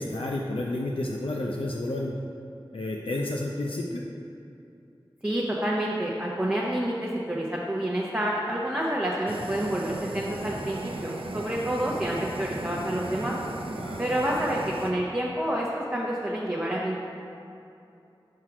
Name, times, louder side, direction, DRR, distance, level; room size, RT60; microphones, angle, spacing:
voice 1, 0.0-2.1 2.7-4.0 13.8-14.0, left 1 dB, 80° left, -2 dB, 0.4 m, -31 dB
voice 2, 5.2-13.4 14.0-17.0, right 1 dB, 15° right, -5 dB, 0.7 m, -28 dB
Fire, 9.3-14.9, right 2 dB, 80° right, 0.5 m, -36 dB
5.7 x 4.7 x 4.8 m, 2.7 s
wide cardioid pair, 45°, 9 cm